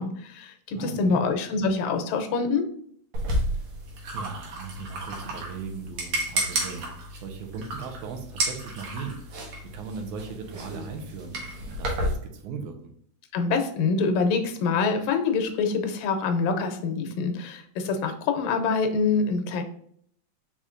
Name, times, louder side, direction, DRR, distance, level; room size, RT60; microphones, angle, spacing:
voice 1, 0.0-2.7 13.3-19.6, left 4 dB, 80° left, 6 dB, 2.0 m, -25 dB
voice 2, 0.7-1.2 3.5-3.6 4.1-12.8, right 5 dB, 90° right, 4 dB, 2.2 m, -38 dB
sound 1, 3.1-12.2, right 1 dB, 65° right, 2.4 m, -32 dB
4.9 x 4.2 x 2.4 m, 0.64 s
omnidirectional pair, 3.4 m